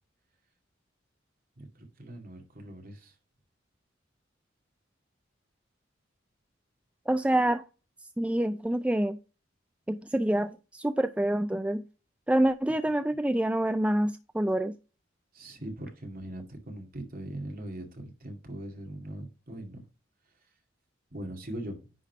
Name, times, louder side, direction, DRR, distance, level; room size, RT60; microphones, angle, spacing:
voice 1, 1.6-3.1 15.3-19.8 21.1-21.8, right 1 dB, 50° right, 2.2 m, -41 dB
voice 2, 7.1-7.6 8.2-9.2 9.9-11.8 12.3-14.7, right 1 dB, 5° right, 0.3 m, -27 dB
10.0 x 3.7 x 4.6 m
head